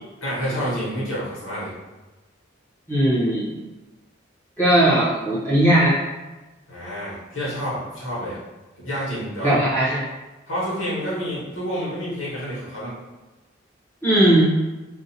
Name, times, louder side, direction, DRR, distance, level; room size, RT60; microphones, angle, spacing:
voice 1, 0.2-1.7 6.7-8.4 8.8-9.6 10.5-12.9, equal, 85° left, -7 dB, 1.2 m, -28 dB
voice 2, 2.9-3.5 4.6-6.0 9.4-10.0 14.0-14.5, right 1 dB, 10° left, -8 dB, 0.8 m, -18 dB
2.6 x 2.2 x 2.7 m, 1.1 s
head